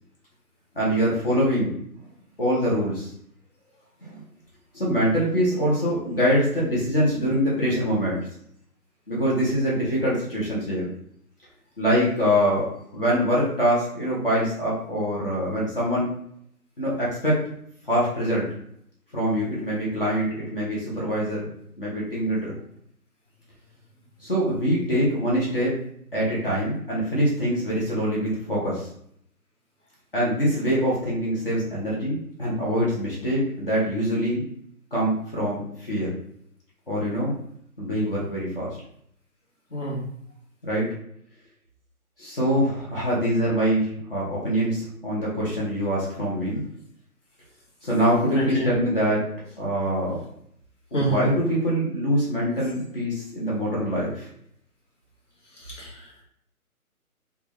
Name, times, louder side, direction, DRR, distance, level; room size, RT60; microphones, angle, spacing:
voice 1, 0.7-1.7 2.4-3.1 4.0-4.2 4.7-8.2 9.1-10.9 11.8-12.7 12.9-16.1 16.8-17.4 17.8-18.5 19.1-21.5 21.8-22.6 24.2-25.7 26.1-28.9 30.1-34.4 34.9-36.1 36.9-37.3 37.8-38.8 40.6-40.9 42.2-46.6 47.8-49.3 49.6-50.2 50.9-54.3, equal, 40° left, -6 dB, 1.0 m, -24 dB
voice 2, 39.7-40.0 48.3-48.7 50.9-51.3 55.6-56.1, right 2 dB, 55° left, -4 dB, 1.5 m, -28 dB
3.5 x 2.4 x 3.0 m, 0.70 s
hypercardioid pair, 170°, 45 cm